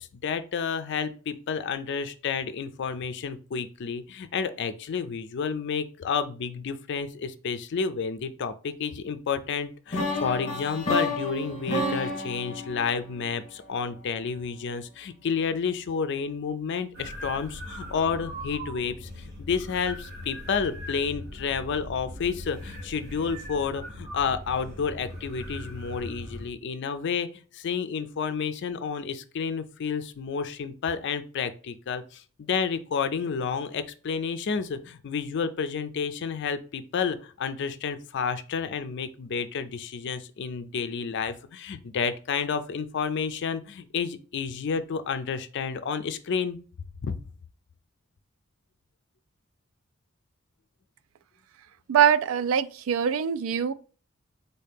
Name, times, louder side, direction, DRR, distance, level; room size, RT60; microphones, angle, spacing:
voice 1, 0.0-46.6 47.0-47.2, left 6 dB, 60° left, 0.4 m, -30 dB
sound 1, 9.9-13.9, left 2 dB, 35° left, 1.2 m, -30 dB
sound 2, 16.9-26.5, equal, 50° right, 1.2 m, -40 dB
voice 2, 51.9-53.7, right 8 dB, 75° right, 0.3 m, -23 dB
4.1 x 2.8 x 3.4 m
head